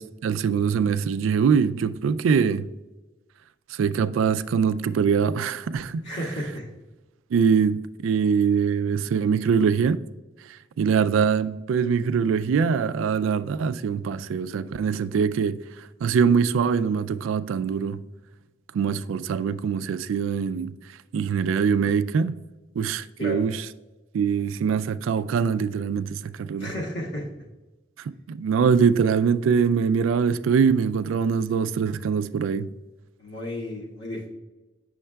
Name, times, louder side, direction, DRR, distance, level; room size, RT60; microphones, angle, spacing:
voice 1, 0.2-2.6 3.8-6.0 7.3-10.0 10.8-15.6 16.0-18.0 18.7-20.7 21.1-22.3 22.8-23.6 24.1-26.7 28.3-32.7, right 6 dB, 90° right, 0.3 m, -23 dB
voice 2, 6.0-6.7 23.2-23.4 26.6-27.3 33.2-34.3, left 1 dB, 60° left, 1.6 m, -32 dB
8.4 x 6.4 x 2.2 m
head